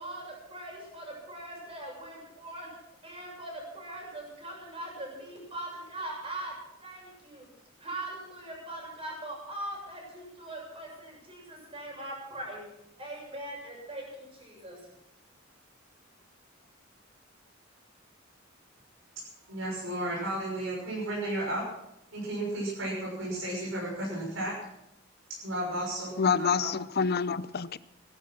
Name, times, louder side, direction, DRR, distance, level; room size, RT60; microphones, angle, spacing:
voice 1, 0.0-2.7 3.0-7.5 7.8-12.6 13.0-14.8, right 1 dB, 30° right, -1 dB, 6.8 m, -41 dB
voice 2, 19.5-21.6 22.1-24.5 25.4-26.7, right 1 dB, 80° right, -4 dB, 6.1 m, -33 dB
voice 3, 26.2-27.8, left 5 dB, 50° left, 17 dB, 0.6 m, -27 dB
17.5 x 12.0 x 6.1 m, 0.81 s
head